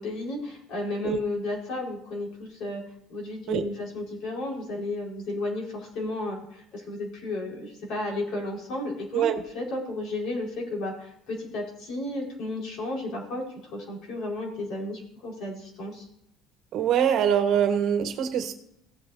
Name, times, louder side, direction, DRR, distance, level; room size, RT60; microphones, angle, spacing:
voice 1, 0.0-2.8 3.1-9.3 9.5-13.5 13.7-16.1, left 2 dB, 60° left, 0 dB, 4.5 m, -33 dB
voice 2, 16.7-18.5, right 8 dB, 55° right, 7 dB, 1.2 m, -23 dB
17.0 x 7.8 x 2.7 m, 0.78 s
cardioid pair, 145°, 0 cm